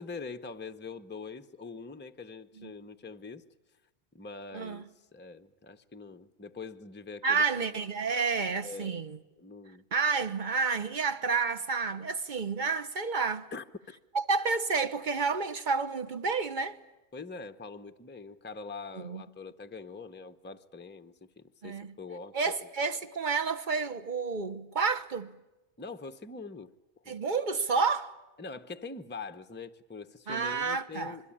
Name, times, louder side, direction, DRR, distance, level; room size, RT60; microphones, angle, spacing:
voice 1, 0.0-3.4 4.1-7.4 8.6-9.0 9.4-9.8 13.5-14.0 17.1-22.4 22.6-22.7 25.8-26.7 27.0-27.2 28.4-31.3, left 4 dB, 10° left, 0.7 m, -43 dB
voice 2, 4.5-4.8 7.2-9.2 9.9-13.5 14.1-16.8 18.9-19.2 21.6-21.9 22.3-25.3 27.1-28.2 30.3-31.2, right 5 dB, 45° right, 1.2 m, -30 dB
26.5 x 22.0 x 8.7 m
omnidirectional pair, 1.2 m